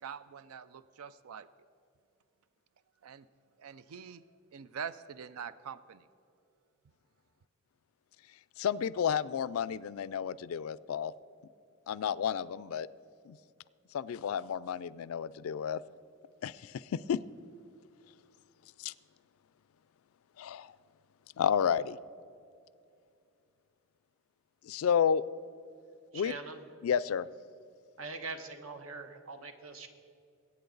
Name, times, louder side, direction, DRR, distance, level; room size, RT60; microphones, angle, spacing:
voice 1, 0.0-1.5 3.0-3.2 3.6-4.2 4.5-6.0, right 7 dB, 85° right, 15 dB, 0.4 m, -44 dB
voice 2, 8.6-11.1 11.9-12.9 13.3-13.4 13.9-15.8 16.4-17.2 18.8-18.9 20.4-20.7 21.4-22.0 24.6-25.2 26.1-26.3 26.8-27.3, left 8 dB, 80° left, 19 dB, 0.3 m, -31 dB
voice 3, 26.1-26.7 28.0-29.9, right 3 dB, 70° right, 7 dB, 1.1 m, -43 dB
21.5 x 8.7 x 3.9 m, 2.5 s
head